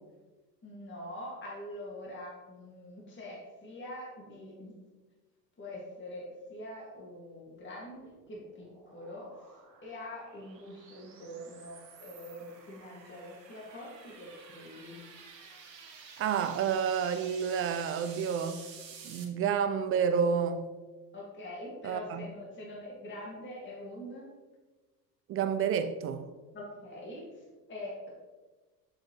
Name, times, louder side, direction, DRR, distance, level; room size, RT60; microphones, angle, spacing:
voice 1, 0.6-4.7 5.6-15.1 21.1-24.3 26.5-28.1, left 1 dB, 25° left, 2.1 m, -44 dB
sound 1, 7.6-19.2, right 6 dB, 85° right, 1.3 m, -52 dB
voice 2, 16.2-18.7 19.0-20.7 21.8-22.3 25.3-26.3, right 7 dB, 30° right, 0.4 m, -29 dB
7.5 x 6.2 x 3.2 m
hypercardioid pair, 80°, 49 cm